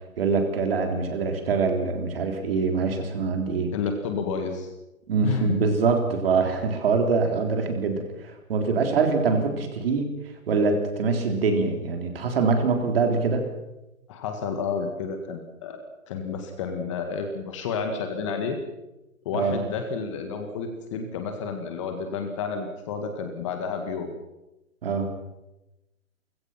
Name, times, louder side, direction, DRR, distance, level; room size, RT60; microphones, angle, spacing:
voice 1, 0.2-3.7 5.1-10.1 10.5-13.4 19.3-19.5 24.8-25.1, right 4 dB, 40° right, 4 dB, 3.8 m, -24 dB
voice 2, 3.7-4.7 5.2-5.5 8.8-8.9 14.1-15.8 16.1-18.6 19.3-24.1, left 5 dB, 20° left, 5 dB, 1.8 m, -30 dB
30.0 x 16.5 x 5.8 m, 0.96 s
hypercardioid pair, 160°, 43 cm